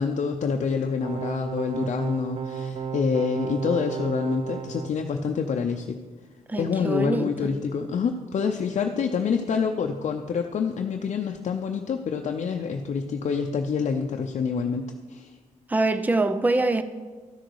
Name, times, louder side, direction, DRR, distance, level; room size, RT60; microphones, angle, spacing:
voice 1, 0.0-6.0 6.6-15.3, left 5 dB, 65° left, 0.6 m, -27 dB
sound 1, 1.0-4.9, right 6 dB, 45° right, 0.8 m, -33 dB
voice 2, 6.5-7.5 15.7-16.8, right 2 dB, 15° right, 0.6 m, -24 dB
13.0 x 6.5 x 4.7 m
wide cardioid pair, 110°, 13 cm